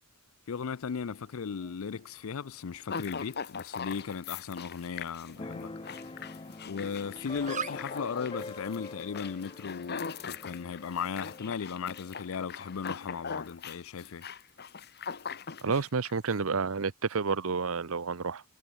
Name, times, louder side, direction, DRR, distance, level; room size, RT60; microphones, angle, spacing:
voice 1, 0.5-5.7 6.6-14.3, left 6 dB, 65° left, 0.5 m, -36 dB
sound 1, 1.1-9.7, right 6 dB, 35° right, 3.2 m, -48 dB
sound 2, 2.9-16.3, left 6 dB, 50° left, 1.3 m, -41 dB
Keyboard (musical), 5.4-12.9, left 3 dB, 25° left, 0.7 m, -45 dB
voice 2, 15.6-18.4, right 5 dB, 65° right, 0.8 m, -30 dB
head